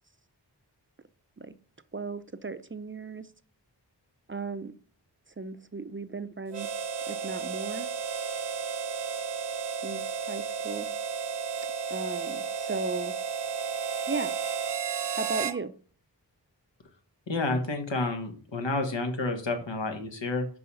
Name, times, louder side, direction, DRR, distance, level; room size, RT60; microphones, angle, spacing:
voice 1, 1.9-3.3 4.3-4.7 5.4-6.7 7.1-7.9 9.8-10.9 11.9-13.1 14.1-14.3 15.1-15.7, right 3 dB, 30° right, 13 dB, 0.5 m, -36 dB
Harmonica, 6.5-15.6, right 6 dB, 70° right, 0.7 m, -33 dB
voice 2, 17.3-20.5, left 2 dB, 85° left, 5 dB, 1.5 m, -30 dB
5.6 x 5.4 x 5.6 m, 0.42 s
wide cardioid pair, 55°, 43 cm